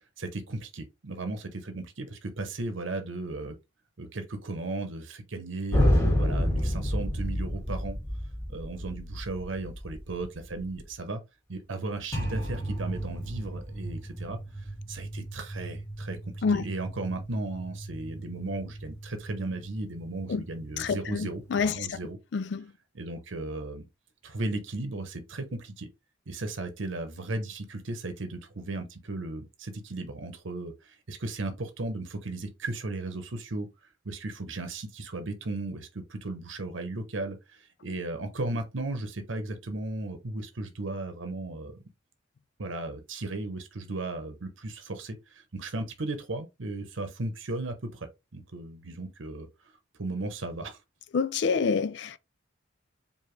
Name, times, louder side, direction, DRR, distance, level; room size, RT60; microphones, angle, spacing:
voice 1, 0.2-3.6 4.0-8.0 8.5-11.2 11.5-22.2 22.9-23.9 24.2-25.9 26.3-33.7 34.0-41.8 42.6-49.5 50.0-50.8, right 2 dB, 80° right, 0.8 m, -36 dB
sound 1, 5.7-10.8 12.1-22.1, equal, 15° left, 1.6 m, -32 dB
voice 2, 20.8-22.0 22.3-22.7 51.1-52.2, left 5 dB, 60° left, 0.4 m, -27 dB
4.9 x 2.7 x 3.1 m
head